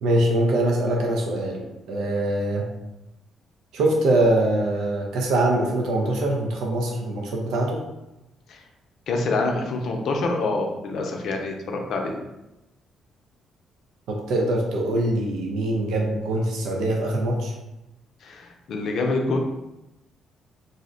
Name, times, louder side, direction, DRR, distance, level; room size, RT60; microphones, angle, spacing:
voice 1, 0.0-2.6 3.7-7.8 14.1-17.5, right 1 dB, 85° right, -1 dB, 0.5 m, -23 dB
voice 2, 9.1-12.2 18.2-19.4, left 3 dB, 70° left, 2 dB, 0.5 m, -26 dB
2.5 x 2.1 x 3.7 m, 0.95 s
cardioid pair, 90°, 0 cm